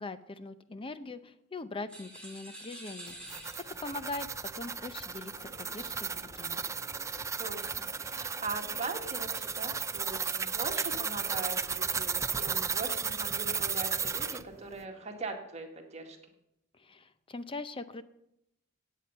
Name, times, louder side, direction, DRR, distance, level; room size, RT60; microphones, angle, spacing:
voice 1, 0.0-3.2 3.6-4.3 4.6-6.6 16.8-18.0, left 3 dB, 25° left, 12 dB, 0.6 m, -41 dB
sound 1, 1.9-4.1, right 1 dB, 5° left, 3.3 m, -47 dB
sound 2, 3.1-14.4, right 6 dB, 15° right, 0.4 m, -34 dB
sound 3, 5.3-15.2, left 1 dB, 50° left, 5.2 m, -58 dB
voice 2, 7.4-16.2, right 3 dB, 35° right, 3 dB, 1.8 m, -40 dB
16.5 x 8.5 x 5.6 m, 0.82 s
head